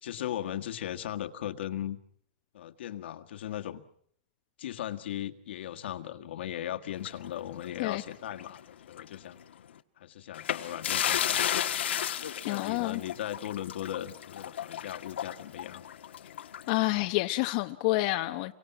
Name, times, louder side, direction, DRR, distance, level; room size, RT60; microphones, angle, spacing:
voice 1, 0.0-2.0 2.5-3.8 4.6-9.4 10.0-11.8 12.4-15.8, left 11 dB, 70° left, 1.8 m, -38 dB
sound 1, 7.0-8.6 8.9-9.1 10.3-16.8, left 10 dB, 90° left, 1.4 m, -33 dB
voice 2, 12.5-13.0 16.7-18.5, left 19 dB, 45° left, 1.0 m, -28 dB
29.0 x 24.0 x 6.1 m
supercardioid pair, 155°, 6 cm